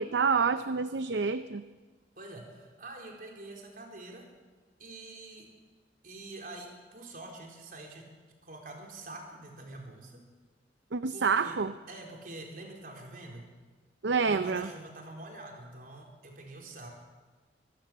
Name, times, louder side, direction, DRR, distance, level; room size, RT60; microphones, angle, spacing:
voice 1, 0.0-1.6 10.9-11.7 14.0-14.7, right 5 dB, 85° right, 11 dB, 0.6 m, -28 dB
voice 2, 2.2-4.3 4.8-5.5 6.0-8.1 8.4-10.3 11.1-11.6 11.9-13.5 14.3-16.9, right 2 dB, 55° right, 1 dB, 4.2 m, -46 dB
24.5 x 15.0 x 7.5 m, 1.4 s
head